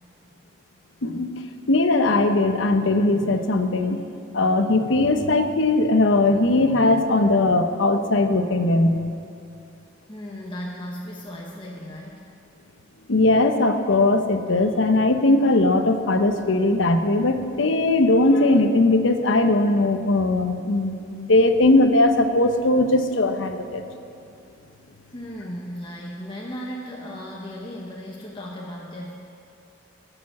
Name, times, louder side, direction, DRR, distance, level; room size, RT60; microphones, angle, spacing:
voice 1, 1.0-4.1 4.3-9.0 13.1-23.8, left 2 dB, 80° left, 7 dB, 0.9 m, -19 dB
voice 2, 10.1-12.2 25.1-29.1, equal, 25° left, -3 dB, 1.1 m, -36 dB
14.5 x 6.9 x 7.4 m, 2.5 s
head